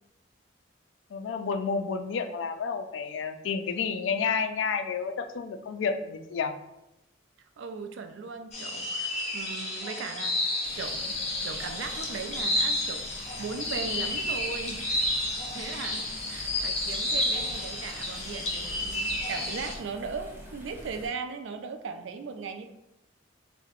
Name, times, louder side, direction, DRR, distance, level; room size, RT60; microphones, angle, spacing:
voice 1, 1.1-6.5, left 5 dB, 75° left, 8 dB, 0.3 m, -30 dB
voice 2, 7.6-15.0 15.5-22.7, right 5 dB, 70° right, 7 dB, 0.3 m, -38 dB
sound 1, 8.5-19.8, left 1 dB, 35° left, 0.6 m, -31 dB
sound 2, 10.6-21.1, equal, 10° right, 0.5 m, -46 dB
3.7 x 2.1 x 2.9 m, 0.89 s
head